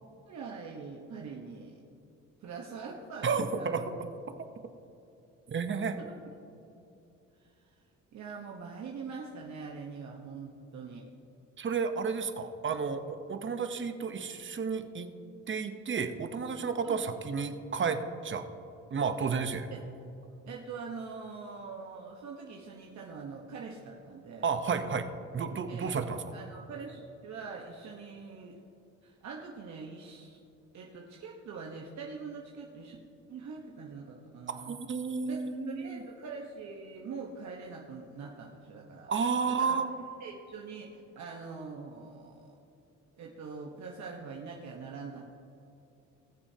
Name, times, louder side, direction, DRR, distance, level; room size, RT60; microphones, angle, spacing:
voice 1, 0.3-1.8 2.4-3.7 6.0-6.1 7.4-7.8 8.1-11.1 16.8-17.0 19.7-19.8 20.5-24.5 25.7-25.9 26.3-28.6 29.0-30.4 30.7-33.0 33.3-34.8 35.2-39.1 39.5-39.8 40.2-42.6 43.2-45.4, right 5 dB, 65° right, -1 dB, 1.1 m, -43 dB
voice 2, 3.2-3.8 5.5-6.0 11.6-15.1 15.5-18.4 18.9-19.7 24.4-25.1 25.3-26.4 34.7-36.0 39.1-39.9, right 5 dB, 40° right, 8 dB, 0.9 m, -32 dB
20.0 x 6.9 x 2.8 m, 2.8 s
cardioid pair, 90°, 30 cm